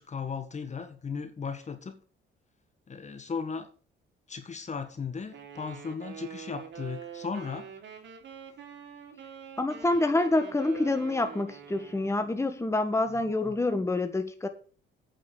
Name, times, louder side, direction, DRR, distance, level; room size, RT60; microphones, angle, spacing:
voice 1, 0.0-2.0 2.9-3.7 4.3-7.7 13.5-13.6, left 5 dB, 35° left, 9 dB, 1.6 m, -36 dB
Wind instrument woodwind instrument, 5.3-12.3, right 7 dB, 65° right, 3.3 m, -45 dB
voice 2, 9.6-14.5, left 2 dB, 15° left, 7 dB, 1.7 m, -27 dB
9.1 x 6.0 x 8.1 m, 0.39 s
cardioid pair, 90°, 20 cm